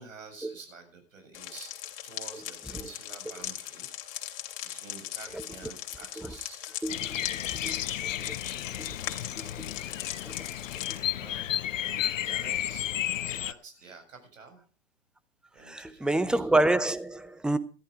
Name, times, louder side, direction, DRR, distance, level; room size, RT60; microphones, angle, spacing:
voice 1, 0.0-1.7 2.0-3.9 4.7-6.6 7.4-9.2 9.7-9.8 10.5-10.7 11.2-12.9 13.2-14.6 15.5-16.5, right 4 dB, 85° right, 6.9 m, -50 dB
sound 1, 1.3-11.0, left 13 dB, 50° left, 2.8 m, -39 dB
voice 2, 6.8-7.2 7.5-7.8 9.4-9.7 15.7-17.6, right 2 dB, ahead, 0.8 m, -27 dB
Bird vocalization bird call bird song, 6.9-13.5, left 11 dB, 75° left, 0.9 m, -33 dB
14.0 x 12.5 x 4.9 m
hypercardioid pair, 125°, 38 cm